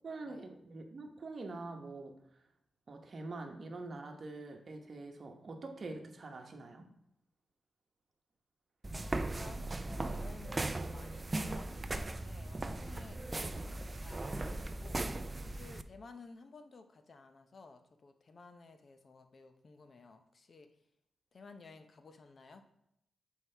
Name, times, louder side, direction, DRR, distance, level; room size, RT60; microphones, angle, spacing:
voice 1, 0.0-2.1 2.9-6.9, right 3 dB, 50° right, 4 dB, 1.0 m, -45 dB
sound 1, 8.8-15.8, right 2 dB, 25° right, 0.3 m, -38 dB
voice 2, 9.0-15.0 15.5-20.7 21.3-22.6, left 4 dB, 50° left, 7 dB, 0.6 m, -55 dB
7.3 x 4.6 x 3.3 m, 0.78 s
cardioid pair, 95°, 0 cm